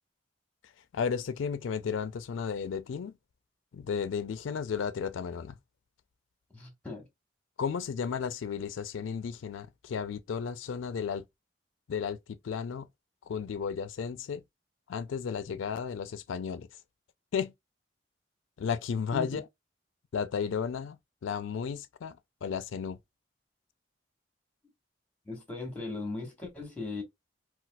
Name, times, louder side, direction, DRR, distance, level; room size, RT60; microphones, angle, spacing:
voice 1, 0.9-3.1 3.7-5.5 7.6-11.2 11.9-12.2 12.4-12.9 13.3-14.4 14.9-16.7 17.3-17.5 18.6-19.4 20.1-21.0 21.2-23.0, left 6 dB, 90° left, 0.4 m, -33 dB
voice 2, 6.5-7.1 19.1-19.4 25.2-27.0, left 3 dB, 5° left, 1.2 m, -38 dB
4.1 x 2.3 x 2.2 m
head